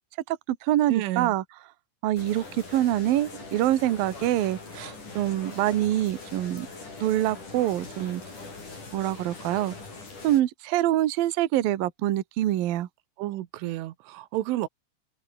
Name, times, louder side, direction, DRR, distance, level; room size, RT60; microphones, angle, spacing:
voice 1, 0.3-1.4 2.0-2.4 2.7-6.7 7.0-8.2 8.9-9.8 10.2-12.9, right 13 dB, 65° right, 2.7 m, -25 dB
voice 2, 0.9-1.4 13.2-14.7, right 16 dB, 85° right, 3.7 m, -31 dB
sound 1, 2.2-10.4, left 3 dB, 40° left, 9.4 m, -42 dB
open air
omnidirectional pair, 5.5 m